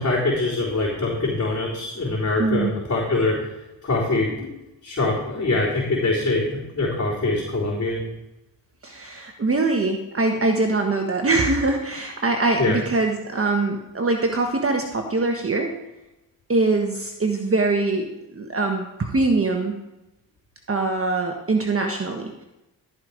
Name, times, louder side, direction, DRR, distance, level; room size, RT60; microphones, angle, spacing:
voice 1, 0.0-3.4 3.8-4.5 4.8-6.5 6.7-8.1 12.6-12.8, left 2 dB, 35° left, -8 dB, 4.2 m, -23 dB
voice 2, 2.4-2.7 8.8-15.7 16.5-19.8 20.7-22.4, right 3 dB, 35° right, 3 dB, 1.3 m, -23 dB
13.5 x 5.4 x 4.9 m, 0.95 s
supercardioid pair, 55°, 42 cm